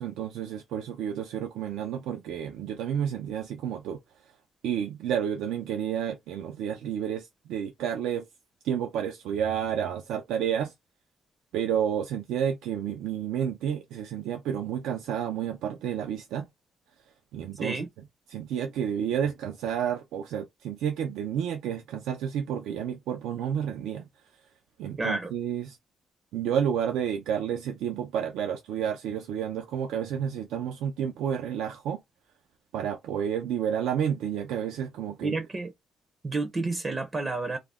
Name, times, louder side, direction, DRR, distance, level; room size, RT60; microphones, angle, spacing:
voice 1, 0.0-4.3 4.6-8.3 8.6-10.7 11.5-16.5 17.3-17.8 18.3-24.1 24.8-25.8 26.3-32.0 32.7-35.4 36.6-36.7, right 9 dB, 90° right, 0.4 m, -30 dB
voice 2, 25.0-25.3 35.2-35.7 36.2-37.6, right 3 dB, 30° right, 0.5 m, -30 dB
2.3 x 2.0 x 3.3 m
cardioid pair, 90°, 0 cm